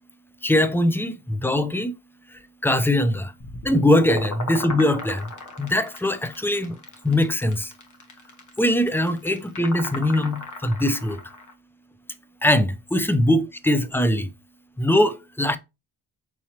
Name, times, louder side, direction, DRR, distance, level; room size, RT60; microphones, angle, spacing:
voice 1, 0.4-1.9 2.3-3.3 3.6-5.3 5.6-6.8 7.0-7.7 8.6-11.2 12.4-14.3 14.8-15.6, left 1 dB, 5° left, 0.5 m, -21 dB
sound 1, 3.4-11.5, left 2 dB, 50° left, 1.3 m, -37 dB
6.0 x 2.9 x 2.8 m
cardioid pair, 75°, 40 cm